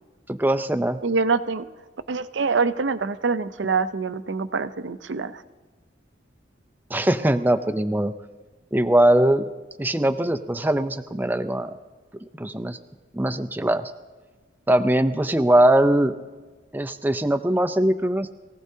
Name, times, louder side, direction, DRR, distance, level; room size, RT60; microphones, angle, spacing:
voice 1, 0.3-1.0 6.9-8.1 8.7-9.5 9.8-11.8 12.3-12.8 13.1-13.9 14.7-16.1 16.7-18.3, right 1 dB, 10° right, 9 dB, 0.5 m, -21 dB
voice 2, 1.0-1.7 2.1-5.4, right 4 dB, 65° right, 12 dB, 0.6 m, -25 dB
23.0 x 16.0 x 2.8 m, 1.3 s
head